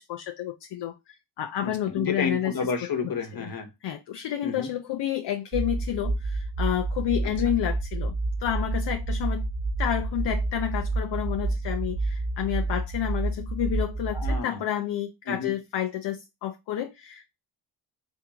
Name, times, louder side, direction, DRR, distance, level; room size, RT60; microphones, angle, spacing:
voice 1, 0.1-2.5 3.0-3.1 3.8-8.1 8.4-9.4 9.8-17.3, left 11 dB, 75° left, 0.6 m, -30 dB
voice 2, 1.6-3.7 4.4-4.7 14.1-14.6 15.3-15.5, left 4 dB, 55° left, 1.3 m, -31 dB
sound 1, 5.5-14.4, right 2 dB, 55° right, 1.3 m, -29 dB
3.6 x 3.1 x 3.5 m
cardioid pair, 65°, 42 cm